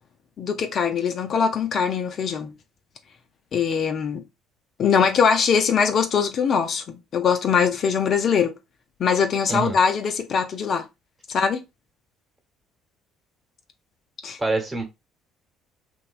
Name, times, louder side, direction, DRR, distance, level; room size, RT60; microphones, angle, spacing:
voice 1, 0.4-2.5 3.5-4.2 4.8-8.5 9.0-10.9 11.3-11.6 14.2-14.4, left 6 dB, 50° left, 0.3 m, -22 dB
voice 2, 14.4-14.9, right 3 dB, 20° right, 1.0 m, -25 dB
2.8 x 2.1 x 2.4 m
figure-of-eight pair, 55°, 0 cm